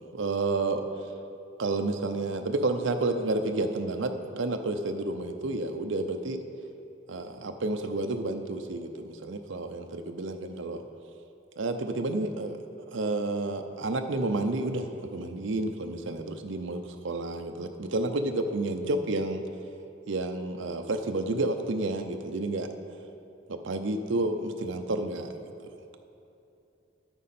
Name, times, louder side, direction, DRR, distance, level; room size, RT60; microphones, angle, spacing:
voice 1, 0.1-0.8 1.6-6.4 7.1-10.8 11.6-12.6 12.9-19.4 20.1-22.7 23.5-25.3, right 2 dB, 70° right, 5 dB, 0.6 m, -30 dB
10.5 x 9.0 x 4.3 m, 2.8 s
head